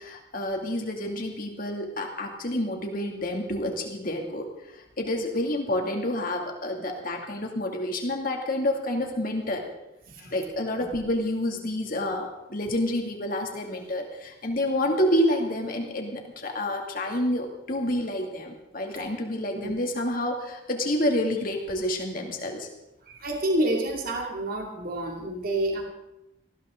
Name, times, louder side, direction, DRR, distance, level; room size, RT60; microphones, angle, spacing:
voice 1, 0.0-9.7 10.2-22.7, left 1 dB, 45° left, 2 dB, 2.5 m, -29 dB
voice 2, 23.0-25.8, right 1 dB, 50° right, 1 dB, 2.8 m, -28 dB
19.5 x 15.0 x 3.9 m, 0.92 s
head